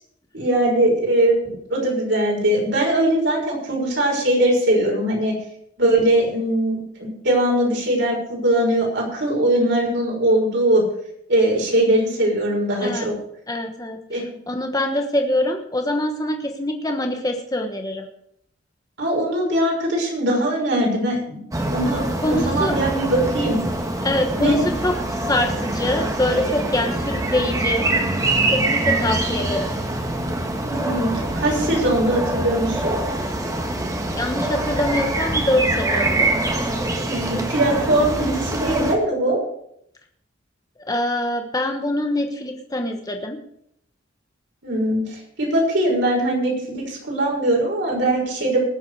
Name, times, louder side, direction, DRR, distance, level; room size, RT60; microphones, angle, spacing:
voice 1, 0.3-5.3 5.8-10.8 11.3-13.1 14.1-14.2 19.0-21.4 21.7-23.6 24.4-24.6 30.6-33.0 37.1-39.4 44.6-48.6, right 1 dB, 65° right, -1 dB, 5.8 m, -21 dB
voice 2, 13.5-18.1 22.2-22.8 24.0-27.9 28.5-29.7 34.1-36.3 40.9-43.4, left 1 dB, 20° left, 4 dB, 1.2 m, -24 dB
sound 1, 21.5-38.9, right 2 dB, 20° right, 1.6 m, -24 dB
20.0 x 7.7 x 4.8 m, 0.71 s
head